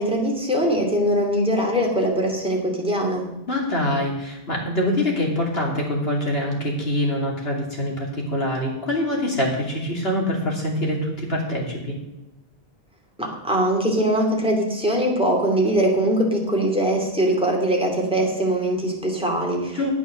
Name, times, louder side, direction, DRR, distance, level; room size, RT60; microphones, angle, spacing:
voice 1, 0.0-3.3 13.2-19.9, right 1 dB, 5° right, -1 dB, 2.6 m, -22 dB
voice 2, 3.5-12.0 19.7-19.9, left 1 dB, 75° left, -2 dB, 3.2 m, -24 dB
9.5 x 9.4 x 6.5 m, 0.92 s
omnidirectional pair, 1.0 m